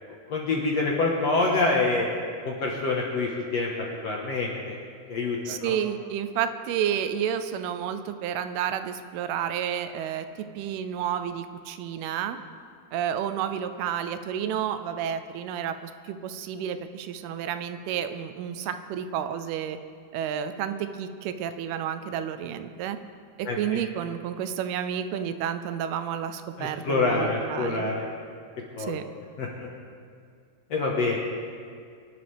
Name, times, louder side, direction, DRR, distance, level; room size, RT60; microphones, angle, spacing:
voice 1, 0.3-2.1 2.5-3.7 4.0-4.8 5.1-5.8 23.5-23.8 26.6-28.1 28.8-29.0 29.4-29.7 30.7-31.2, left 3 dB, 60° left, -2 dB, 1.9 m, -26 dB
voice 2, 5.5-10.3 10.6-12.4 12.9-19.8 20.1-23.0 23.4-27.9 28.8-29.0, right 9 dB, 85° right, 10 dB, 2.6 m, -31 dB
24.5 x 11.5 x 3.5 m, 2.3 s
omnidirectional pair, 4.5 m